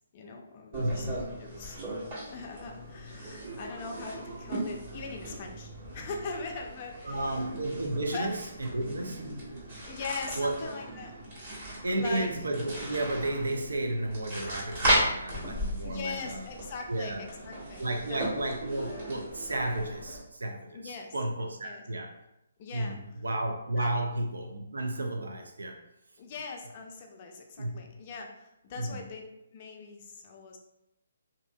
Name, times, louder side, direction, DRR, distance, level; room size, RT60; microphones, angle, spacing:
voice 1, 0.1-1.1 1.4-1.8 2.3-7.4 8.1-8.3 9.9-11.1 12.0-12.3 15.8-17.8 18.1-18.2 20.7-21.1 21.6-21.8 22.6-23.0 23.8-23.9 26.2-30.6, left 4 dB, 35° left, 2 dB, 0.4 m, -40 dB
sound 1, 0.7-20.2, right 1 dB, 45° right, 1.2 m, -36 dB
voice 2, 0.7-1.1 3.5-3.6 7.0-9.2 10.4-10.7 11.8-16.5 16.9-17.2 17.8-22.1 22.7-25.8 27.6-27.9 28.8-29.1, right 1 dB, 85° right, 3 dB, 0.5 m, -33 dB
2.7 x 2.5 x 2.2 m, 0.86 s
hypercardioid pair, 145°, 0 cm